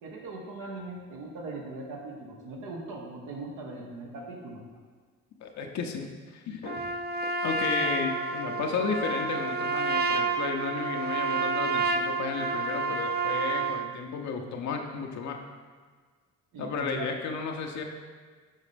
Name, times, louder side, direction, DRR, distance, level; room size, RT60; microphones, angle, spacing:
voice 1, 0.0-4.6 7.8-7.9 8.8-8.9 16.5-17.1, right 2 dB, 85° right, -1 dB, 1.4 m, -40 dB
voice 2, 5.4-6.8 7.4-15.4 16.6-17.8, left 5 dB, 65° left, 2 dB, 0.8 m, -33 dB
Trumpet, 6.6-13.9, right 3 dB, 35° right, 0.5 m, -29 dB
6.3 x 4.2 x 5.0 m, 1.5 s
cardioid pair, 90°, 30 cm